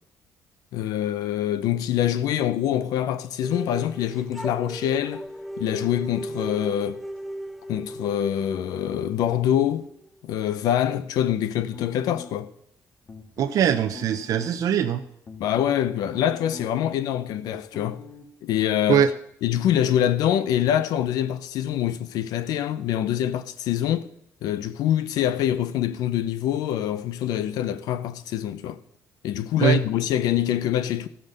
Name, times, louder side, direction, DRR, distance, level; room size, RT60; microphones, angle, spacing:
voice 1, 0.7-5.3 5.6-7.0 7.7-9.9 10.2-12.5 15.4-18.0 18.4-19.0 19.4-24.1 24.4-28.8 29.2-31.1, left 11 dB, 85° left, 0.7 m, -25 dB
sound 1, 3.4-10.3, right 1 dB, ahead, 0.6 m, -37 dB
sound 2, 11.7-12.6 13.1-14.5 15.0-16.9 17.2-18.3, left 4 dB, 40° left, 1.9 m, -43 dB
voice 2, 13.4-15.0 18.9-19.1 29.6-29.8, right 9 dB, 65° right, 0.7 m, -21 dB
14.0 x 5.4 x 6.6 m
cardioid pair, 100°, 6 cm